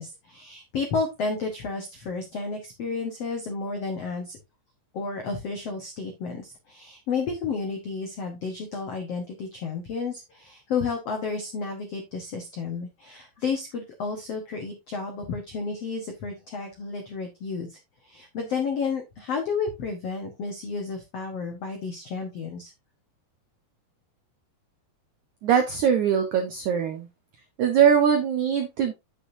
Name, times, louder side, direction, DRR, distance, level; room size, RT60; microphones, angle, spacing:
voice 1, 0.0-4.4 4.9-17.8 18.0-22.7, left 4 dB, 90° left, 4 dB, 1.3 m, -31 dB
voice 2, 25.4-27.1 27.6-28.9, right 8 dB, 80° right, 5 dB, 1.7 m, -21 dB
8.7 x 7.8 x 2.7 m, 0.22 s
omnidirectional pair, 5.0 m